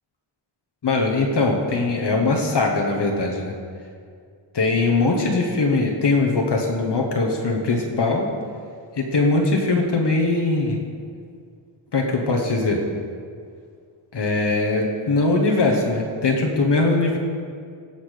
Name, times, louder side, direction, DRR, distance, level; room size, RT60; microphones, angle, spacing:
voice 1, 0.8-3.5 4.5-8.3 8.9-10.8 11.9-12.8 14.1-17.2, left 3 dB, 55° left, 1 dB, 1.4 m, -21 dB
17.0 x 5.9 x 6.6 m, 2.2 s
wide cardioid pair, 170°, 49 cm